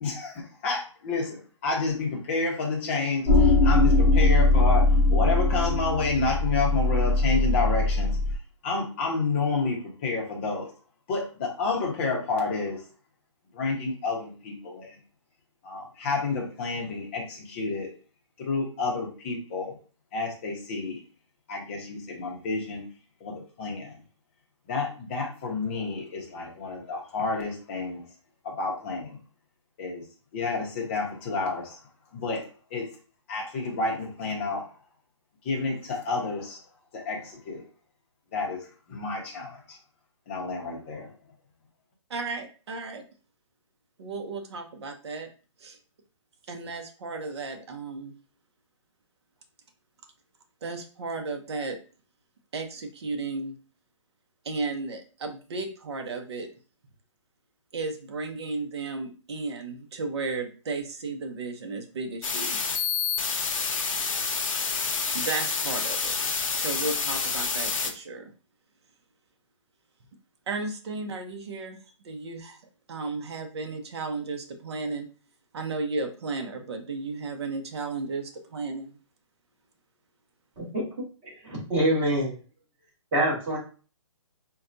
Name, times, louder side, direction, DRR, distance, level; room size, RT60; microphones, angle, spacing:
voice 1, 0.0-8.2 8.6-10.7 11.1-12.8 13.5-15.0 15.6-17.9 18.4-19.7 20.1-21.0 21.5-22.8 23.2-24.0 24.7-28.0 28.4-29.2 29.8-30.0 30.3-31.8 32.1-32.9 33.3-34.7 35.4-36.6 36.9-37.6 38.3-39.8 40.3-41.1, left 3 dB, 20° left, -1 dB, 0.7 m, -30 dB
sound 1, 3.3-8.4, left 2 dB, ahead, 0.3 m, -21 dB
voice 2, 42.1-43.0 44.0-45.3 45.6-45.8 46.5-48.1 50.6-51.8 52.5-53.6 54.4-56.5 57.7-62.6 65.1-66.1 66.5-68.2 70.5-71.8 72.0-72.6 72.9-75.1 75.5-79.0, right 3 dB, 55° right, 4 dB, 0.7 m, -34 dB
sound 2, 62.2-67.9, left 5 dB, 85° left, 0.7 m, -28 dB
voice 3, 81.2-82.4 83.1-83.6, right 1 dB, 25° right, -5 dB, 1.4 m, -26 dB
4.1 x 2.2 x 2.6 m, 0.37 s
hypercardioid pair, 165°, 17 cm